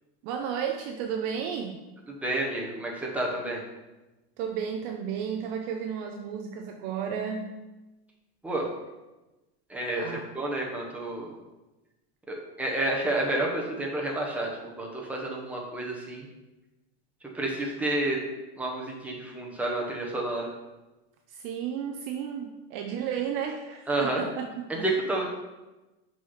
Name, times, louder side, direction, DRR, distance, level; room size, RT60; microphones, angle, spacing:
voice 1, 0.2-1.8 4.4-7.5 10.0-10.3 21.3-24.9, right 7 dB, 30° right, 4 dB, 0.4 m, -33 dB
voice 2, 2.2-3.6 8.4-8.7 9.7-11.3 12.6-16.3 17.3-18.2 18.6-20.5 23.9-24.3 24.8-25.4, right 2 dB, 5° right, -2 dB, 1.0 m, -30 dB
6.0 x 5.7 x 5.6 m, 1.1 s
supercardioid pair, 165°, 34 cm